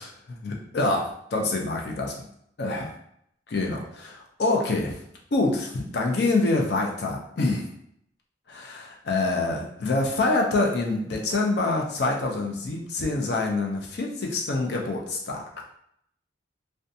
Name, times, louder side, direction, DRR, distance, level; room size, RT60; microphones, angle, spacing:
voice 1, 0.0-2.2 2.6-2.9 3.5-5.0 5.3-7.7 8.5-15.4, left 2 dB, 60° left, -1 dB, 0.4 m, -26 dB
2.5 x 2.2 x 2.6 m, 0.71 s
head